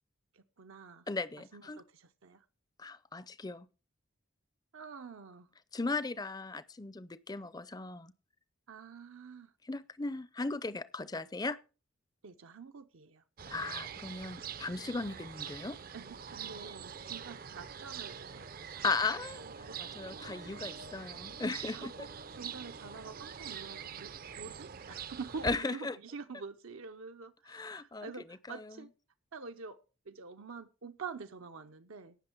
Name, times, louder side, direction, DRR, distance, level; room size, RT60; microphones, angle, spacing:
voice 1, 0.3-1.1 1.5-2.4 4.7-5.5 8.7-9.5 12.2-13.2 15.9-18.9 19.4-19.8 20.4-20.8 21.7-28.9 29.3-29.8 30.1-32.2, right 5 dB, 80° right, 0.7 m, -47 dB
voice 2, 1.1-1.8 2.8-3.7 5.7-8.1 9.6-11.6 13.5-15.8 18.8-21.9 25.4-26.0 27.5-28.1 28.5-28.9, left 3 dB, 20° left, 0.5 m, -37 dB
sound 1, 13.4-25.6, right 7 dB, 45° right, 0.5 m, -44 dB
17.5 x 6.3 x 4.5 m
head